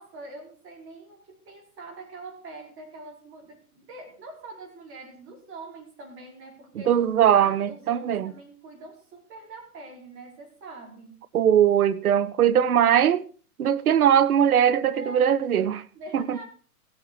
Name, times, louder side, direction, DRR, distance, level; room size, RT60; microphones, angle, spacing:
voice 1, 0.0-11.2 14.9-15.3 15.9-16.4, right 2 dB, 30° right, 4.9 m, -44 dB
voice 2, 6.9-8.3 11.3-13.2 13.6-15.8 16.1-16.4, right 9 dB, 70° right, 0.9 m, -20 dB
16.5 x 8.2 x 4.8 m
figure-of-eight pair, 110°, 46 cm